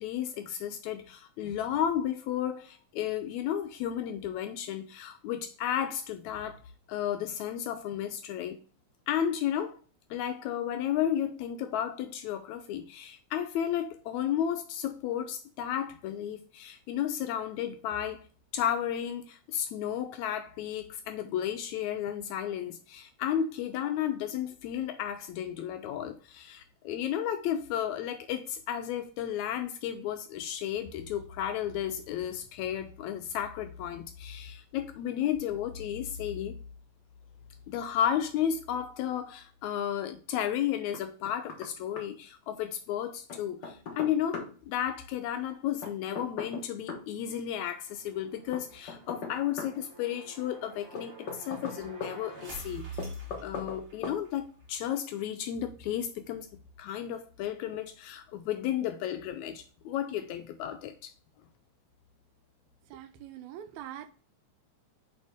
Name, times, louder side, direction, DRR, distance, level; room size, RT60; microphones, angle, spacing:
voice 1, 0.0-6.6 6.9-8.6 9.1-9.8 10.1-18.3 18.5-36.6 37.7-52.8 53.4-56.5 56.8-61.1, left 10 dB, 80° left, 1.9 m, -33 dB
Knock, 40.9-41.7 42.0-42.1 43.3-44.5 45.8-47.1 48.5-49.8 50.9-52.1 53.0-53.8 54.0-54.2, left 5 dB, 65° left, 1.0 m, -38 dB
sound 1, 47.6-54.4, right 1 dB, 60° right, 0.6 m, -47 dB
voice 2, 62.9-64.1, right 11 dB, 80° right, 2.1 m, -43 dB
8.0 x 3.6 x 3.4 m
omnidirectional pair, 3.4 m